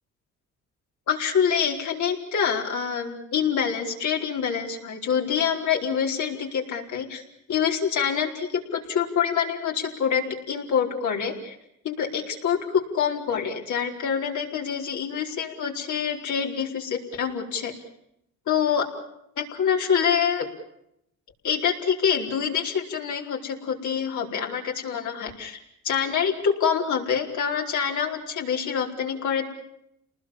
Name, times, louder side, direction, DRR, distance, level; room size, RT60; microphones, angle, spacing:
voice 1, 1.1-7.2 7.5-11.5 11.8-17.7 18.5-18.9 19.4-20.5 21.4-25.6 25.8-29.4, left 7 dB, 70° left, 1 dB, 4.5 m, -26 dB
29.0 x 20.0 x 7.3 m, 0.78 s
cardioid pair, 90°, 30 cm